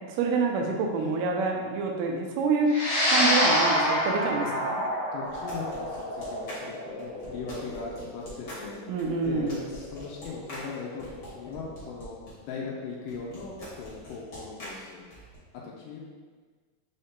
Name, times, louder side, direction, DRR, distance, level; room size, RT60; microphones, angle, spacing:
voice 1, 0.1-2.7 3.1-4.9 8.9-9.7, right 4 dB, 80° right, 1 dB, 2.1 m, -27 dB
voice 2, 0.9-1.8 5.1-8.8 9.2-12.2 12.4-15.0 15.6-16.0, left 4 dB, 85° left, -3 dB, 2.2 m, -39 dB
sound 1, 2.7-11.2, equal, 70° left, 2.5 m, -28 dB
sound 2, 5.3-12.3 13.1-15.4, equal, 40° left, 1.4 m, -44 dB
5.6 x 2.7 x 3.5 m, 1.5 s
omnidirectional pair, 3.8 m